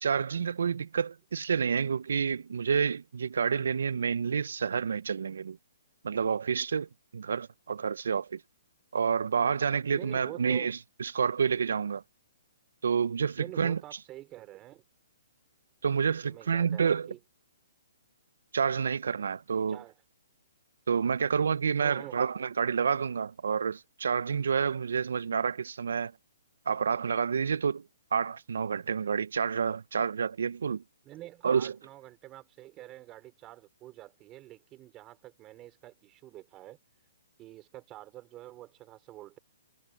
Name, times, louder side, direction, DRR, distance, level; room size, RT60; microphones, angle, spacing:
voice 1, 0.0-5.6 6.0-8.4 8.9-12.0 12.8-13.8 15.8-17.1 18.5-19.8 20.9-26.1 26.7-27.8 28.1-30.8 31.4-31.7, right 6 dB, 80° right, 0.4 m, -29 dB
voice 2, 9.9-10.7 13.4-14.8 16.1-17.2 19.7-19.9 21.8-22.2 31.0-36.8 37.4-39.4, right 15 dB, 20° right, 4.8 m, -47 dB
hypercardioid pair, 155°, 0 cm